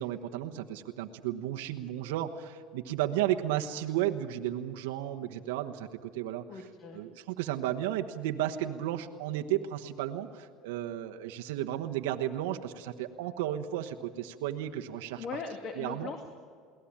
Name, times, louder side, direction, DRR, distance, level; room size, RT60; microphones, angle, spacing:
voice 1, 0.0-6.4 6.9-15.2 15.8-16.1, right 12 dB, 85° right, 4 dB, 1.1 m, -33 dB
voice 2, 6.5-7.0 15.2-16.3, left 5 dB, 45° left, 6 dB, 2.1 m, -39 dB
22.0 x 18.0 x 8.8 m, 2.1 s
supercardioid pair, 105°, 0 cm